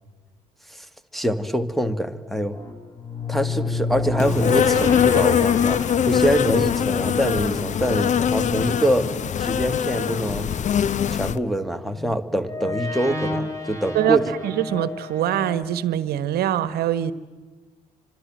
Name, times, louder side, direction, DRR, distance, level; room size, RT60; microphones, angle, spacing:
voice 1, 1.1-2.6 3.3-9.1 9.4-10.5 11.1-14.3, equal, ahead, 11 dB, 1.9 m, -24 dB
sound 1, 2.5-10.6 11.6-15.6, left 2 dB, 15° left, 5.0 m, -31 dB
Insect, 4.2-11.4, left 9 dB, 40° left, 0.8 m, -22 dB
voice 2, 14.4-17.1, right 11 dB, 55° right, 14 dB, 1.3 m, -23 dB
28.0 x 25.5 x 7.7 m, 1.3 s
figure-of-eight pair, 50°, 19 cm